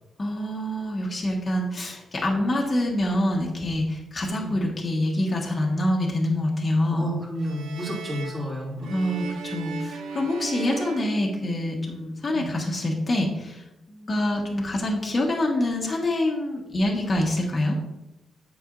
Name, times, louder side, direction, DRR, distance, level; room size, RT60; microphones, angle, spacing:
voice 1, 0.2-7.1 8.9-13.6 13.9-17.7, left 1 dB, 35° left, -1 dB, 1.3 m, -26 dB
voice 2, 6.9-9.0 12.3-12.5, equal, 15° right, -5 dB, 2.6 m, -31 dB
sound 1, 7.4-12.0, right 4 dB, 85° right, 0.7 m, -36 dB
8.4 x 6.0 x 2.6 m, 0.94 s
cardioid pair, 100°, 0 cm